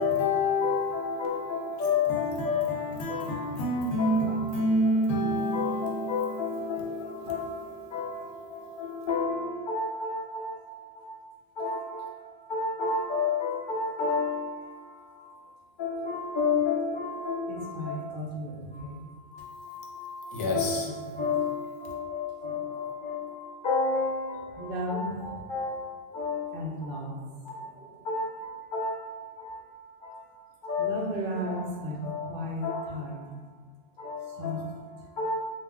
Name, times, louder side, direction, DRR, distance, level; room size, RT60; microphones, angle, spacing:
voice 1, 0.0-9.1 20.3-20.9, left 1 dB, 90° left, -3 dB, 0.9 m, -30 dB
voice 2, 0.6-2.6 3.1-3.2 4.0-4.3 4.9-5.0 5.3-7.4 7.9-8.2 8.8-10.5 11.6-11.9 12.5-14.4 15.8-17.6 17.9-18.1 20.5-20.9 21.2-21.5 22.1-22.6 23.0-23.1 23.6-24.1 24.9-25.1 25.5-25.7 26.1-26.4 28.1-28.3 28.7-29.0 29.4-29.5 30.6-30.9 31.5-31.6 32.0-32.2 32.6-32.7 34.0-34.1 34.4-34.6 35.2-35.3, left 5 dB, 60° left, -3 dB, 0.6 m, -30 dB
voice 3, 17.5-19.0 20.4-20.6 21.0-21.2 22.4-23.4 24.5-25.4 26.1-26.2 26.5-28.1 30.8-33.3 34.3-34.6, equal, 60° right, -2 dB, 0.7 m, -36 dB
2.3 x 2.1 x 3.5 m, 1.5 s
omnidirectional pair, 1.2 m